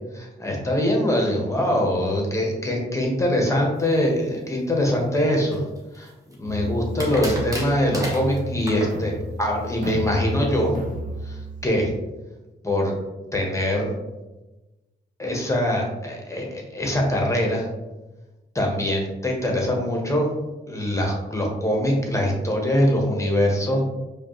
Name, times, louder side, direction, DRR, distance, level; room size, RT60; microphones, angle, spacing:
voice 1, 0.1-5.6 6.0-6.1 6.3-10.7 11.2-11.9 12.6-12.9 13.3-13.9 15.2-17.7 18.5-20.3 20.7-23.8, left 1 dB, 15° left, 0 dB, 1.1 m, -23 dB
sound 1, 5.5-6.3 7.0-9.0, equal, 15° right, 1.2 m, -33 dB
sound 2, 6.5-11.7, left 1 dB, 45° right, 0.6 m, -32 dB
4.9 x 2.4 x 3.1 m, 1.1 s
cardioid pair, 70°, 20 cm